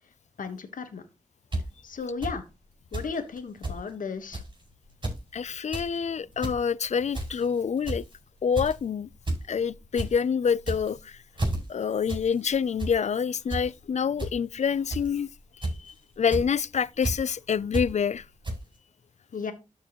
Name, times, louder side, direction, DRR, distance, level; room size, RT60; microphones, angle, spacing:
voice 1, 0.4-1.0 1.8-2.4 2.9-4.4 19.3-19.5, left 5 dB, 90° left, 1.2 m, -34 dB
sound 1, 1.5-1.6 2.2-2.3 2.9-3.1 3.4-3.8 4.3-4.5 4.9-5.2 5.5-5.9 6.3-6.6 7.1-7.4 7.9-8.1 8.5-8.8 9.3-9.4 9.7-10.1 10.6-11.0 11.4-11.6 12.1-12.2 12.5-12.9 13.5-13.6 14.2-14.3 14.9-15.2 15.6-15.9 16.3-16.5 17.0-17.1 17.7-17.9 18.4-18.6, right 1 dB, 35° right, 5.3 m, -30 dB
voice 2, 5.3-8.0 8.4-9.1 9.5-11.2 11.7-15.3 15.6-18.2, left 7 dB, 60° left, 0.4 m, -27 dB
13.0 x 4.7 x 2.9 m
wide cardioid pair, 70°, 14 cm